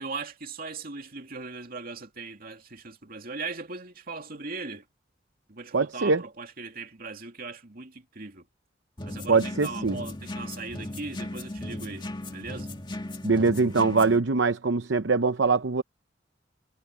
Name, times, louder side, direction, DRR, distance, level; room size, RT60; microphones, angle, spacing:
voice 1, 0.0-4.8 5.5-8.4 9.0-12.7, right 3 dB, 50° right, 2.7 m, -39 dB
voice 2, 5.7-6.2 9.3-10.0 13.2-15.8, right 4 dB, 70° right, 0.8 m, -23 dB
sound 1, 9.0-14.2, left 1 dB, 25° left, 2.1 m, -37 dB
head